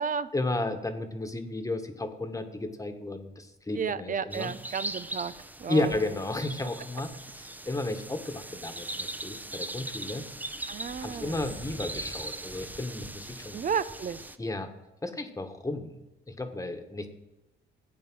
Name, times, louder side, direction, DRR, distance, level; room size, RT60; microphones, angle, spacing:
voice 1, 0.3-4.5 5.7-7.1 7.3-10.3 11.0-13.6 14.4-14.7 15.0-15.9 16.3-17.1, left 2 dB, 15° left, 6 dB, 1.5 m, -33 dB
voice 2, 3.8-5.3 5.6-6.0 10.7-11.5 13.5-14.3, right 7 dB, 40° right, 15 dB, 0.7 m, -32 dB
sound 1, 4.3-14.4, right 1 dB, 10° right, 0.8 m, -40 dB
15.0 x 8.5 x 6.2 m, 0.99 s
cardioid pair, 90°, 20 cm